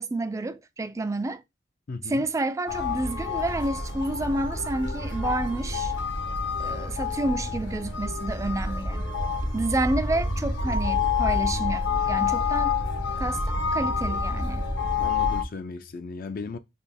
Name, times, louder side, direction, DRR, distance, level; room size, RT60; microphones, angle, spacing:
voice 1, 0.0-1.4 2.0-5.9 6.6-9.1 9.5-12.8 13.2-14.7, right 2 dB, 15° right, 0.3 m, -29 dB
voice 2, 1.9-2.3 15.0-16.6, left 4 dB, 50° left, 0.4 m, -36 dB
sound 1, 2.7-15.4, left 4 dB, 75° left, 1.1 m, -28 dB
4.1 x 2.4 x 3.4 m
head